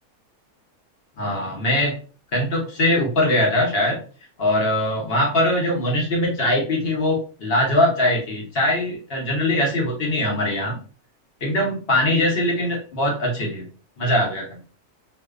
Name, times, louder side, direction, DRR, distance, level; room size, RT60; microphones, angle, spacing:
voice 1, 1.2-2.0 2.3-4.0 4.4-10.8 11.4-13.7 14.0-14.6, left 1 dB, 50° left, -2 dB, 0.8 m, -21 dB
2.5 x 2.1 x 2.3 m, 0.39 s
omnidirectional pair, 1.6 m